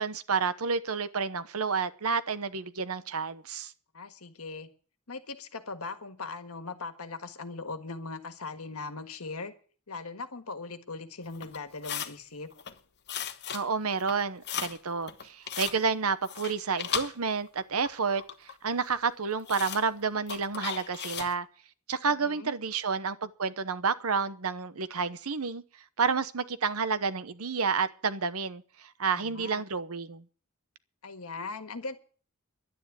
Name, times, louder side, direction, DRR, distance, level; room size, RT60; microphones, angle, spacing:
voice 1, 0.0-3.7 13.5-21.5 21.9-25.6 26.0-30.2, right 5 dB, 80° right, 1.0 m, -30 dB
voice 2, 3.9-4.7 5.1-9.5 9.9-12.5 22.1-22.5 29.1-29.6 31.0-32.0, left 3 dB, 80° left, 1.6 m, -40 dB
sound 1, 11.3-12.1 12.5-12.8 13.1-13.7 13.9-14.8 15.1-15.8 16.2-17.6 17.9-18.6 18.9-19.0 19.5-19.8 20.3-21.3, left 9 dB, 50° left, 1.1 m, -36 dB
11.5 x 9.9 x 8.3 m
head